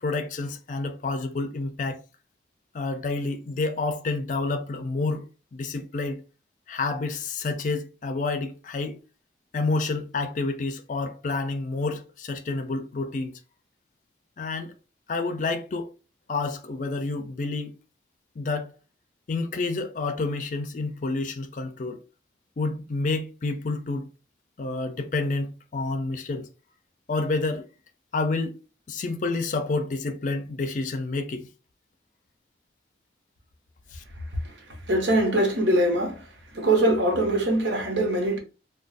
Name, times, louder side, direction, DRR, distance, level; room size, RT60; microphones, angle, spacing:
voice 1, 0.0-2.0 2.7-6.2 6.7-9.0 9.5-13.3 14.4-14.7 15.1-15.9 16.3-17.7 18.4-18.7 19.3-22.0 22.6-24.1 24.6-26.5 27.1-27.7 28.1-28.6 28.9-31.5 33.9-34.0, left 3 dB, 45° left, 0.4 m, -29 dB
voice 2, 34.9-36.2 36.5-38.4, right 1 dB, 85° right, 1.0 m, -22 dB
2.4 x 2.2 x 3.9 m
head